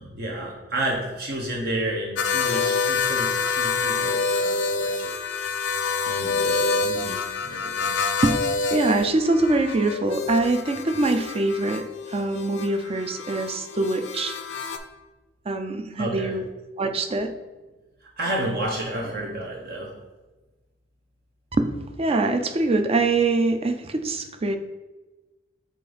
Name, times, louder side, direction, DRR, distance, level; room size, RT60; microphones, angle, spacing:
voice 1, 0.0-5.2 6.0-8.0 16.0-16.4 18.2-19.9, right 1 dB, 60° right, -1 dB, 0.9 m, -31 dB
sound 1, 2.2-14.8, left 4 dB, 85° left, 0.6 m, -27 dB
voice 2, 8.7-14.3 15.5-16.5 16.8-17.3 21.5-21.7 22.0-24.6, right 2 dB, 35° right, 7 dB, 0.5 m, -23 dB
7.6 x 2.6 x 5.0 m, 1.2 s
head